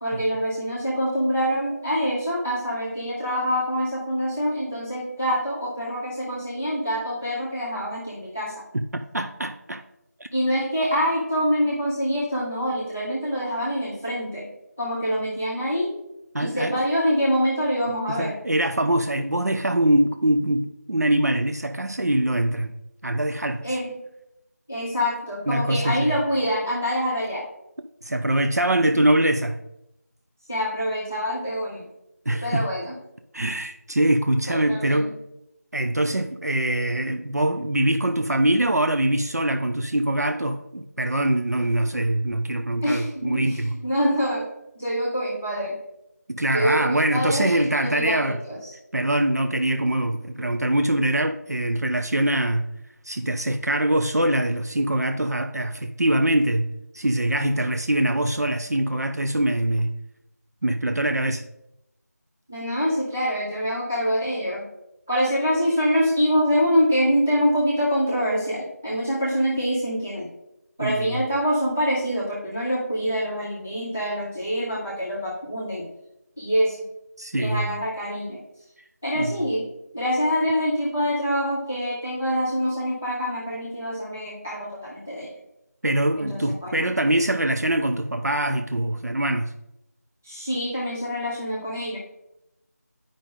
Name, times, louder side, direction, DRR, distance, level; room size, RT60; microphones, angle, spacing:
voice 1, 0.0-8.6 10.3-14.5 14.8-15.9 16.4-18.4 23.6-23.9 24.7-27.5 30.5-31.9 32.4-32.9 34.5-35.1 42.8-44.5 44.7-45.8 46.5-48.7 62.5-64.6 65.1-70.3 70.8-75.9 76.4-76.8 77.4-78.4 79.0-79.6 79.9-85.3 86.1-86.9 90.2-92.0, equal, 10° right, 0.5 m, -25 dB
voice 2, 9.1-9.8 10.2-10.3 16.3-16.8 18.1-22.7 23.0-23.7 25.5-26.2 28.0-29.6 32.3-32.7 33.3-35.2 35.7-43.8 46.3-48.4 48.9-52.7 53.0-60.0 60.6-61.5 70.8-71.2 77.2-77.7 79.1-79.5 85.8-89.5, right 1 dB, 70° right, 0.5 m, -23 dB
8.9 x 5.1 x 3.7 m
figure-of-eight pair, 170°, 9 cm